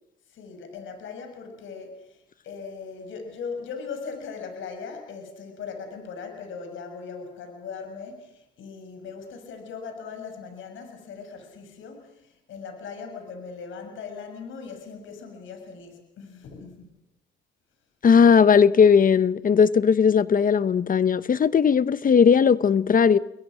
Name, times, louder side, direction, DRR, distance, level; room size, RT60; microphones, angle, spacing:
voice 1, 0.3-16.9, left 5 dB, 75° left, 6.6 m, -39 dB
voice 2, 18.0-23.2, left 6 dB, 45° left, 1.0 m, -18 dB
30.0 x 22.5 x 6.3 m
cardioid pair, 90°, 20 cm